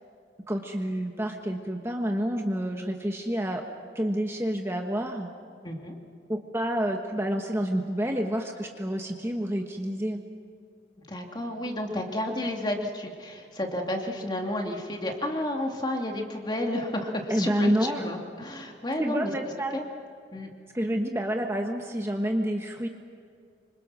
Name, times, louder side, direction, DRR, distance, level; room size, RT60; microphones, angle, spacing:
voice 1, 0.5-3.6 3.9-5.3 6.3-10.2 17.3-18.1 19.0-19.8 20.7-22.9, equal, 15° right, 2 dB, 1.3 m, -28 dB
voice 2, 5.6-6.0 11.1-19.3 19.7-19.8 20.3-20.5, left 1 dB, 25° left, 2 dB, 2.6 m, -31 dB
26.5 x 25.5 x 6.3 m, 2.3 s
head